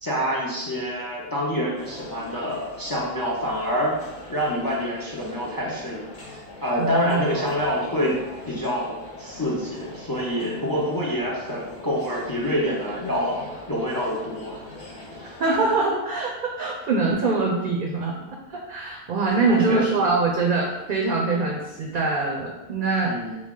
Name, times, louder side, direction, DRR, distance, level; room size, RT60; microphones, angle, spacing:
voice 1, 0.0-4.0 4.3-8.2 8.5-13.4 13.7-14.6 15.1-15.4 19.4-19.9 23.0-23.4, equal, 25° left, -4 dB, 0.5 m, -27 dB
sound 1, 1.7-15.8, left 2 dB, 50° left, 0.9 m, -42 dB
voice 2, 6.8-7.5 15.4-18.1 18.5-23.1, right 3 dB, 60° right, 0 dB, 0.7 m, -23 dB
4.7 x 2.3 x 3.6 m, 1.1 s
omnidirectional pair, 1.0 m